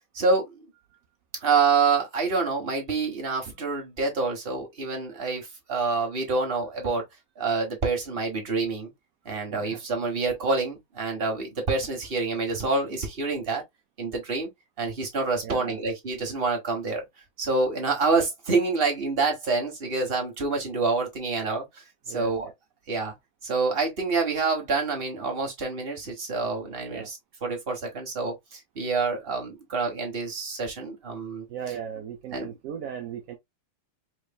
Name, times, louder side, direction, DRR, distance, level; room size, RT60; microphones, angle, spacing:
voice 1, 0.1-0.7 1.4-7.0 7.4-8.9 9.2-13.6 14.0-14.5 14.8-17.0 17.4-22.5 22.9-23.1 23.4-31.5 32.3-32.5, right 4 dB, 30° right, 1.4 m, -27 dB
voice 2, 9.5-9.8 15.4-15.8 22.1-22.3 26.9-27.1 31.5-33.4, right 8 dB, 65° right, 0.8 m, -37 dB
4.7 x 3.2 x 2.3 m
omnidirectional pair, 2.1 m